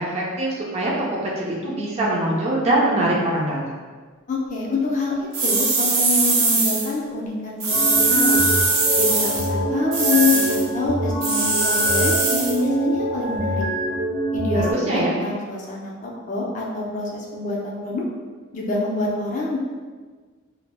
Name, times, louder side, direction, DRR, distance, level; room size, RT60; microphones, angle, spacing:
voice 1, 0.0-3.6 14.5-15.1, right 1 dB, 30° right, -4 dB, 0.5 m, -23 dB
voice 2, 4.3-8.5 9.0-13.6 14.3-18.0 18.5-19.6, left 3 dB, 35° left, -3 dB, 0.4 m, -26 dB
sound 1, 5.3-6.9 7.6-9.5 9.9-10.6 11.2-12.6, right 3 dB, 80° right, 0.6 m, -21 dB
sound 2, 7.7-14.7, right 1 dB, 55° right, 0.9 m, -24 dB
2.1 x 2.0 x 3.3 m, 1.4 s
head